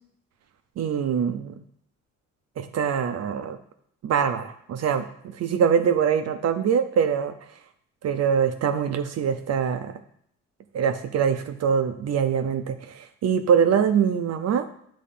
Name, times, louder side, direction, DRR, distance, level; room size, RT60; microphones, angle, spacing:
voice 1, 0.8-1.6 2.6-3.6 4.0-7.3 8.0-9.9 10.7-14.6, right 7 dB, 55° right, 8 dB, 0.6 m, -23 dB
8.4 x 3.1 x 5.4 m, 0.67 s
cardioid pair, 90°, 30 cm